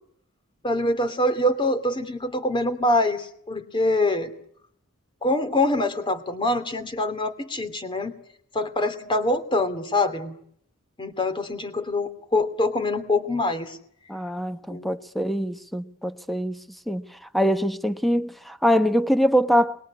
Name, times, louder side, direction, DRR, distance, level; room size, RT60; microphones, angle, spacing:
voice 1, 0.6-4.3 5.2-8.1 8.5-10.3 11.0-13.8 14.7-14.9, left 1 dB, 25° left, 2.7 m, -24 dB
voice 2, 14.1-16.6 16.9-17.0 17.3-19.8, equal, ahead, 1.1 m, -23 dB
27.5 x 22.0 x 9.7 m
head